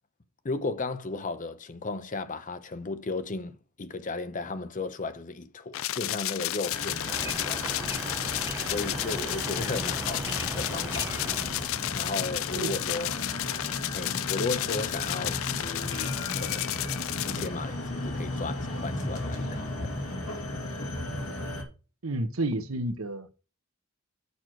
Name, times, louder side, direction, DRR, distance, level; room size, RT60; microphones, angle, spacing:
voice 1, 0.4-7.8 8.6-11.2 11.9-13.2 13.9-16.8 17.2-19.9, left 3 dB, 40° left, 0.7 m, -35 dB
sound 1, 5.7-17.5, left 15 dB, 65° left, 0.3 m, -32 dB
sound 2, 6.7-21.6, left 2 dB, 80° left, 2.3 m, -35 dB
sound 3, 7.1-12.0, right 2 dB, 15° right, 0.5 m, -39 dB
voice 2, 22.0-23.3, right 1 dB, 75° right, 1.0 m, -31 dB
6.9 x 6.3 x 4.4 m
head